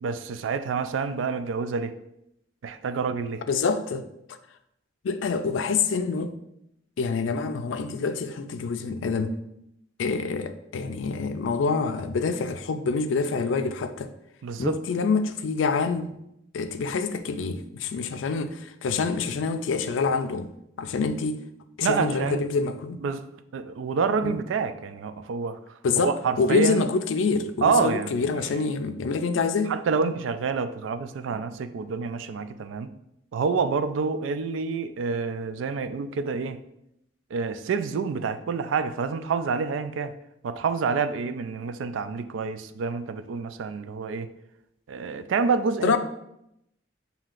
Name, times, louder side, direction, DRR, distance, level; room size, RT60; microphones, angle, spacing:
voice 1, 0.0-1.9 2.6-3.4 14.4-14.8 21.8-22.4 23.0-23.3 23.5-25.6 26.0-26.9 27.6-28.4 29.7-32.9 33.3-36.6 37.3-40.1 40.4-44.3 44.9-46.0, right 5 dB, 90° right, 0.3 m, -27 dB
voice 2, 3.5-4.0 5.0-6.3 7.0-9.4 10.0-14.1 14.6-16.1 16.5-20.5 20.8-21.4 21.8-23.0 24.2-24.4 25.8-29.8 30.0-30.2 45.8-46.0, left 4 dB, 80° left, 0.4 m, -26 dB
7.3 x 2.8 x 2.4 m
head